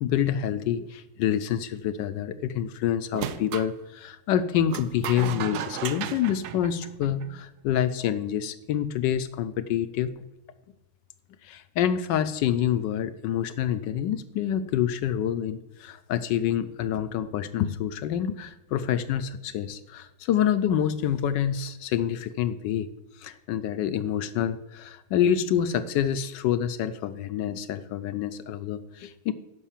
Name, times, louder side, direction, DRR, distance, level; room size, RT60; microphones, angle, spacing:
voice 1, 0.0-10.1 11.4-22.9 23.2-29.3, left 10 dB, 75° left, 13 dB, 1.1 m, -27 dB
sound 1, 3.1-3.7 4.7-7.4, right 9 dB, 70° right, 1.0 m, -34 dB
11.0 x 5.4 x 7.3 m, 1.0 s
omnidirectional pair, 2.3 m